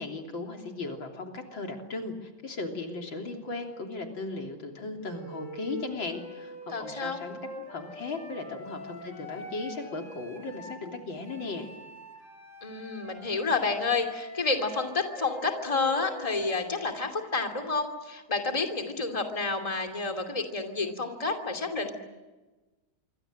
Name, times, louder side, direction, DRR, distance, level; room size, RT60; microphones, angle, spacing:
voice 1, 0.0-11.7, left 3 dB, 75° left, 3 dB, 4.0 m, -37 dB
Wind instrument woodwind instrument, 5.0-10.8 11.2-16.9, equal, 40° left, 7.1 m, -45 dB
voice 2, 6.7-7.2 12.6-21.9, left 4 dB, 15° left, 5 dB, 2.7 m, -30 dB
27.0 x 24.0 x 7.7 m, 1.2 s
omnidirectional pair, 2.1 m